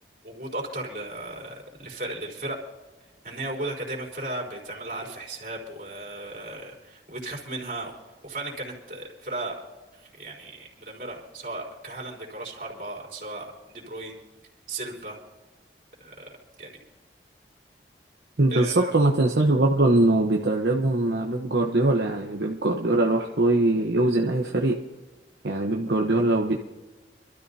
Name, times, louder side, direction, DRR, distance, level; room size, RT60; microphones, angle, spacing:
voice 1, 0.2-2.6 3.2-7.9 8.2-9.6 9.9-14.1 14.7-15.2 16.0-16.3 16.6-16.7 18.5-18.9, right 2 dB, 50° right, -2 dB, 3.8 m, -35 dB
voice 2, 18.4-24.8 25.4-26.6, right 2 dB, 75° right, 1 dB, 1.0 m, -22 dB
26.0 x 13.0 x 2.8 m, 1.2 s
head